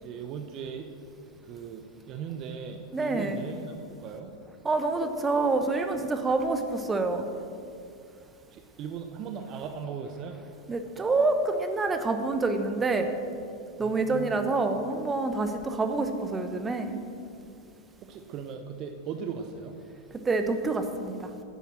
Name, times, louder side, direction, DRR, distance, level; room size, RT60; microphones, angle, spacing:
voice 1, 0.0-0.9 1.4-3.7 4.0-4.3 8.5-10.4 13.8-14.4 18.1-19.8, right 6 dB, 35° right, 6 dB, 0.8 m, -38 dB
voice 2, 2.9-3.4 4.6-7.3 10.7-13.1 13.8-17.0 20.2-21.3, right 3 dB, 15° right, 7 dB, 1.0 m, -27 dB
10.0 x 9.3 x 7.7 m, 2.5 s
figure-of-eight pair, 90°, 0 cm